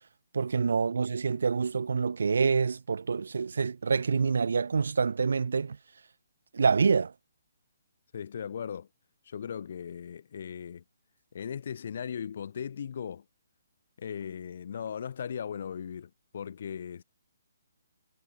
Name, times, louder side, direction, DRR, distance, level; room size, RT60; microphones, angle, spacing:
voice 1, 0.3-5.8 6.5-7.1, right 5 dB, 75° right, 2.7 m, -26 dB
voice 2, 8.1-8.9 9.3-10.8 11.3-13.2 14.0-17.0, left 7 dB, 45° left, 2.5 m, -38 dB
hypercardioid pair, 175°, 0 cm